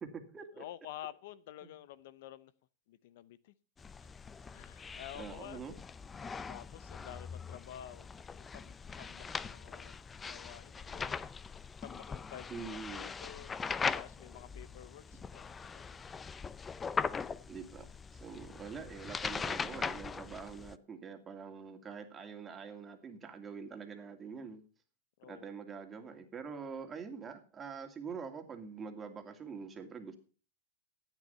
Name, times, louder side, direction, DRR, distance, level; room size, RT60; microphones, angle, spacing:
voice 1, 0.0-0.7 1.6-1.7 5.1-5.7 12.5-13.1 17.5-17.9 18.1-24.6 25.3-30.2, right 5 dB, 20° right, 2.4 m, -45 dB
voice 2, 0.6-2.5 2.9-3.5 4.0-4.1 4.5-5.6 6.5-9.9 10.2-11.2 11.8-13.5 13.9-15.9 25.2-25.5, left 12 dB, 65° left, 0.7 m, -50 dB
sound 1, 3.8-20.8, left 5 dB, 20° left, 0.5 m, -41 dB
14.0 x 9.2 x 5.6 m
hypercardioid pair, 120°, 0 cm